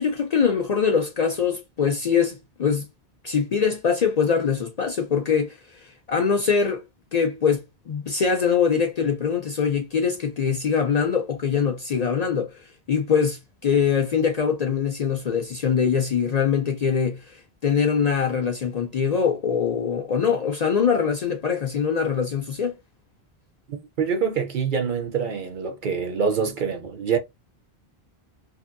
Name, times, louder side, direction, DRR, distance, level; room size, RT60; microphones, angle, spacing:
voice 1, 0.0-2.9 3.2-6.8 7.1-22.7, left 6 dB, 55° left, 0.5 m, -23 dB
voice 2, 23.7-27.2, right 6 dB, 55° right, 0.7 m, -25 dB
2.8 x 2.6 x 2.5 m
omnidirectional pair, 1.1 m